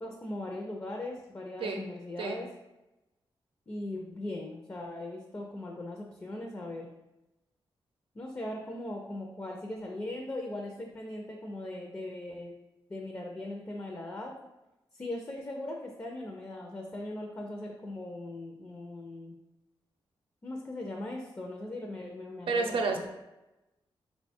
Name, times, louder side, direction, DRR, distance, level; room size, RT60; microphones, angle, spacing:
voice 1, 0.0-2.5 3.7-6.9 8.1-12.5 12.9-14.3 14.9-19.3 20.4-22.8, left 1 dB, 25° left, 0 dB, 0.5 m, -39 dB
voice 2, 22.5-23.1, right 3 dB, 75° right, 3 dB, 0.6 m, -30 dB
3.8 x 2.3 x 4.2 m, 0.98 s
cardioid pair, 95°, 9 cm